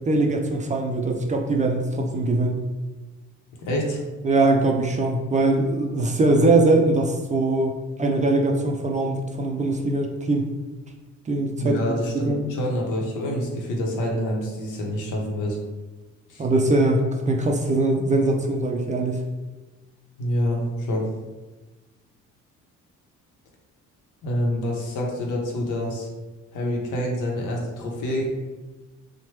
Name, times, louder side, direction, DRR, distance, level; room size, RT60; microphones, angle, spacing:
voice 1, 0.0-2.6 4.2-10.5 11.3-11.8 12.2-12.5 16.4-19.2, right 2 dB, 25° right, 2 dB, 0.3 m, -22 dB
voice 2, 3.6-4.0 11.6-15.6 16.3-16.4 20.2-21.1 24.2-26.1 26.5-28.4, equal, 80° left, -1 dB, 0.8 m, -27 dB
3.0 x 2.1 x 3.1 m, 1.2 s
cardioid pair, 90°, 30 cm